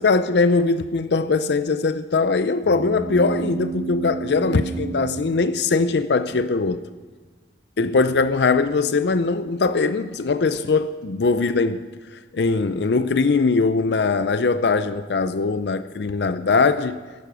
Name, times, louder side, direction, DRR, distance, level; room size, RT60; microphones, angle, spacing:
voice 1, 0.0-6.8 7.8-11.8 12.3-17.0, left 4 dB, 70° left, 0.5 m, -21 dB
sound 1, 2.6-6.3, right 4 dB, 40° right, 0.6 m, -32 dB
14.0 x 11.5 x 6.1 m
head